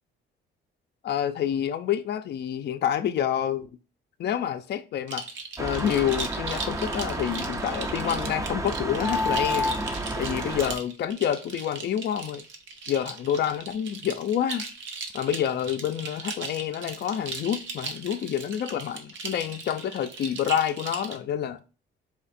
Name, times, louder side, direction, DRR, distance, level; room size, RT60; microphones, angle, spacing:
voice 1, 1.0-3.7 4.2-5.2 5.6-9.7 10.2-12.4 12.9-14.6 15.1-21.6, left 9 dB, 55° left, 0.5 m, -28 dB
sound 1, 5.1-21.2, right 4 dB, 75° right, 0.8 m, -38 dB
sound 2, 5.6-10.7, equal, 15° right, 0.5 m, -30 dB
4.3 x 2.4 x 4.2 m
cardioid pair, 90°, 20 cm